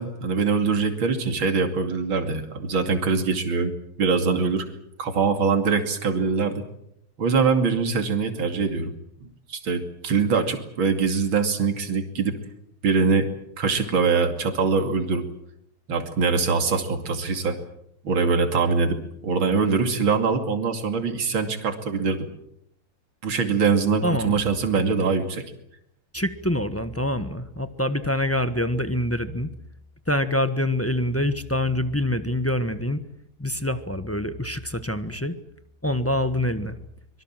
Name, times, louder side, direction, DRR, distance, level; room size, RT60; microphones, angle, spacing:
voice 1, 0.0-4.7 5.0-6.6 7.2-8.9 9.5-12.4 12.8-13.3 13.6-15.2 15.9-17.6 18.0-22.3 23.2-25.4, right 5 dB, 65° right, 6 dB, 3.3 m, -23 dB
voice 2, 24.0-24.4 26.1-29.5 30.1-33.0 33.4-35.4 35.8-36.8, left 1 dB, 10° left, 10 dB, 0.8 m, -25 dB
25.0 x 23.0 x 7.5 m, 0.75 s
omnidirectional pair, 2.4 m